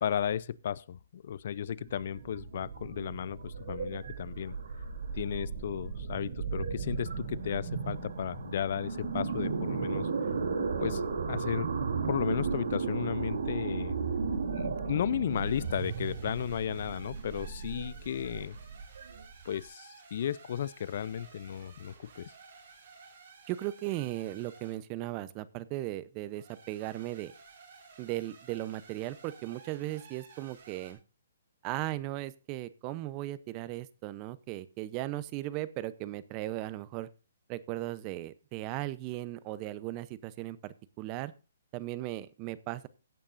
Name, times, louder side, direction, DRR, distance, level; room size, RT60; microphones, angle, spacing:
voice 1, 0.0-4.6 5.1-10.1 10.8-11.7 12.0-13.9 14.5-18.6 19.4-22.3, left 9 dB, 55° left, 0.5 m, -34 dB
sound 1, 1.8-19.6, right 5 dB, 75° right, 3.1 m, -35 dB
sound 2, 15.2-24.8 26.3-30.9, right 5 dB, 55° right, 5.8 m, -55 dB
voice 2, 23.5-27.3 28.0-31.0 31.6-37.1 37.5-41.3 41.7-42.9, right 16 dB, 30° right, 0.7 m, -37 dB
16.5 x 8.9 x 2.6 m
hypercardioid pair, 150°, 0 cm